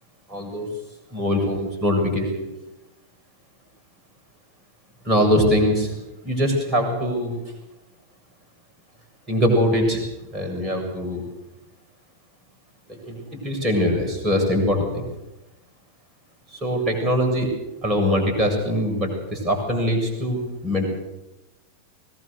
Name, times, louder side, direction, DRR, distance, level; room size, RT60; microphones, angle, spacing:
voice 1, 0.3-0.7 1.1-2.5 5.0-5.9 6.2-7.4 9.3-10.0 10.3-11.2 12.9-15.1 16.5-17.5 17.8-20.9, equal, 20° right, 2 dB, 7.6 m, -22 dB
22.0 x 18.5 x 6.8 m, 0.97 s
figure-of-eight pair, 90°, 0 cm